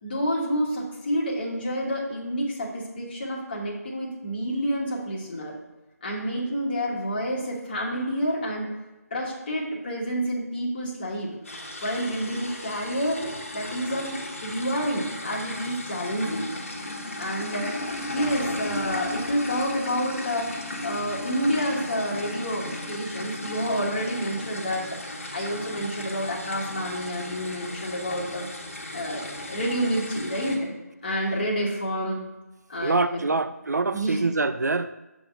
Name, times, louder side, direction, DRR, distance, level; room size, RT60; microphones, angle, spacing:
voice 1, 0.0-5.5 6.0-8.7 9.1-11.3 11.8-13.2 13.5-16.5 17.2-17.7 18.1-20.5 20.8-25.0 25.3-28.5 28.9-30.7 31.0-32.2 32.7-33.3 33.9-34.3, equal, 30° left, -3 dB, 1.2 m, -29 dB
sound 1, 11.5-30.6, left 1 dB, 50° left, 1.2 m, -35 dB
voice 2, 32.8-34.9, right 3 dB, 80° right, 12 dB, 0.3 m, -25 dB
6.9 x 3.6 x 5.8 m, 1.1 s
figure-of-eight pair, 160°, 9 cm